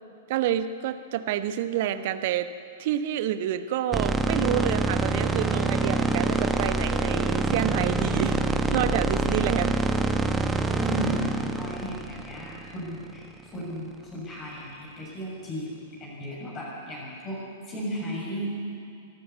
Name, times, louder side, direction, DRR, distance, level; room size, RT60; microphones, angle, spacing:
voice 1, 0.3-2.5 2.8-8.4 8.7-9.7, right 11 dB, 45° right, 11 dB, 1.0 m, -28 dB
sound 1, 3.9-13.1, right 3 dB, 10° right, 1.2 m, -26 dB
voice 2, 10.8-17.4 17.7-18.5, equal, 25° left, -4 dB, 6.8 m, -35 dB
24.0 x 11.5 x 9.7 m, 2.4 s
figure-of-eight pair, 105°, 0 cm